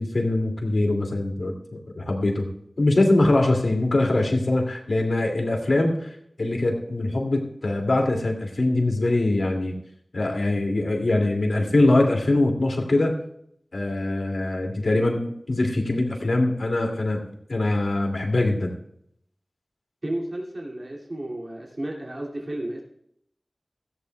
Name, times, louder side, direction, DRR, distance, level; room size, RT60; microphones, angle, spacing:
voice 1, 0.0-2.5 2.8-6.1 6.4-9.7 10.1-13.2 13.7-17.2 17.5-18.7, left 2 dB, 85° left, 2 dB, 2.5 m, -23 dB
voice 2, 20.0-22.8, right 1 dB, 50° right, -3 dB, 2.5 m, -32 dB
17.0 x 14.5 x 2.3 m, 0.71 s
wide cardioid pair, 60°, 0 cm